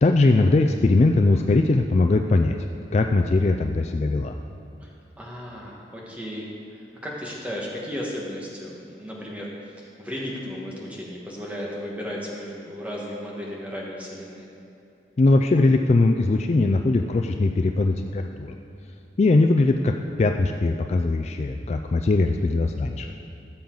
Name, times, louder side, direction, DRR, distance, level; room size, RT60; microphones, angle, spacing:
voice 1, 0.0-2.6 2.9-4.3 15.2-18.5 19.2-23.1, left 2 dB, 35° left, 4 dB, 0.3 m, -20 dB
voice 2, 4.8-14.5, equal, 10° right, -4 dB, 1.5 m, -35 dB
15.0 x 7.1 x 3.9 m, 2.7 s
head